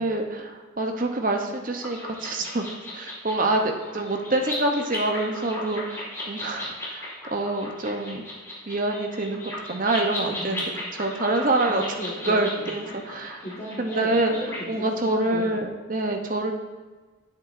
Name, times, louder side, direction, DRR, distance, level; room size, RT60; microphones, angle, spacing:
voice 1, 0.0-2.6 2.9-8.2 8.7-11.8 12.3-13.4 13.8-14.3 14.7-16.5, right 2 dB, 40° right, 4 dB, 0.7 m, -26 dB
sound 1, 1.8-14.6, left 1 dB, 15° left, 1.8 m, -36 dB
voice 2, 10.3-10.8 11.7-15.7, equal, 30° left, -9 dB, 1.6 m, -37 dB
10.5 x 7.5 x 2.6 m, 1.3 s
head